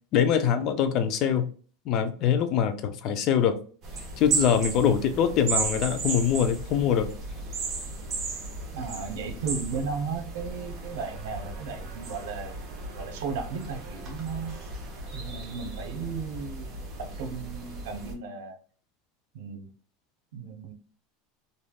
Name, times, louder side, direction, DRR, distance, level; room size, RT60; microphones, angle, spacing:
voice 1, 0.1-1.5 1.9-3.6 4.2-7.1, left 8 dB, 50° left, 0.5 m, -23 dB
sound 1, 3.8-18.1, right 4 dB, 35° right, 1.2 m, -35 dB
voice 2, 8.7-14.6 15.1-18.6 19.3-19.7 20.3-20.7, right 5 dB, 80° right, 0.8 m, -35 dB
3.3 x 2.6 x 2.3 m
supercardioid pair, 130°, 0 cm